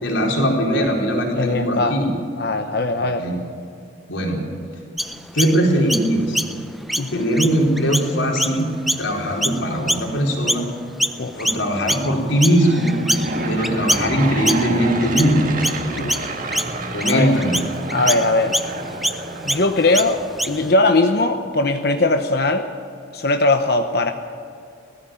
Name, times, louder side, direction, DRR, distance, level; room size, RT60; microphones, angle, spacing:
voice 1, 0.0-2.1 3.2-3.4 4.1-4.4 5.3-6.4 7.1-8.7 9.0-10.7 11.4-12.9 13.5-15.4 16.9-17.6, equal, 90° left, -1 dB, 4.4 m, -20 dB
voice 2, 1.3-2.0 2.4-3.3 7.0-7.2 11.2-11.6 15.9-16.3 17.1-17.4 17.9-18.6 19.4-22.7 23.1-24.1, left 2 dB, 55° left, 6 dB, 0.9 m, -20 dB
Chirp tweet, 5.0-10.7 11.0-20.7, equal, ahead, 0.5 m, -26 dB
Aircraft / Engine, 12.4-20.4, right 2 dB, 45° right, 1.9 m, -29 dB
19.0 x 15.0 x 9.1 m, 2.5 s
head